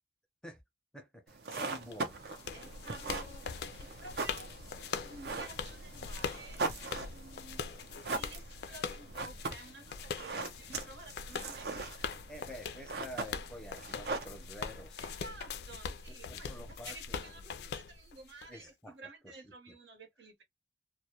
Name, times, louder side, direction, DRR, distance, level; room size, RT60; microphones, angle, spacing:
voice 1, 0.9-2.4 12.3-15.3 16.3-17.4 18.5-19.0 19.4-19.7, equal, 5° left, 0.6 m, -49 dB
sound 1, 1.3-14.9, right 3 dB, 60° right, 0.5 m, -41 dB
sound 2, 1.9-18.5, left 6 dB, 65° left, 0.3 m, -42 dB
voice 2, 2.5-7.6 8.1-12.1 15.0-20.4, right 2 dB, 80° right, 1.0 m, -52 dB
2.2 x 2.1 x 2.7 m
head